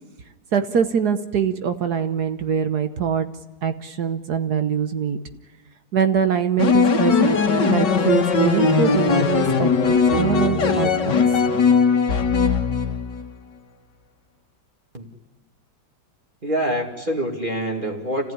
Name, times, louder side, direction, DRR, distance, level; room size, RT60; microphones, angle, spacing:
voice 1, 0.5-3.3 3.6-5.2 5.9-7.4 7.6-9.7 10.2-11.1, right 7 dB, 60° right, 9 dB, 1.5 m, -23 dB
sound 1, 6.6-13.2, left 5 dB, 65° left, 2.4 m, -19 dB
voice 2, 16.4-18.3, right 1 dB, 25° right, 0 dB, 2.4 m, -25 dB
29.5 x 15.5 x 9.7 m, 1.3 s
omnidirectional pair, 2.1 m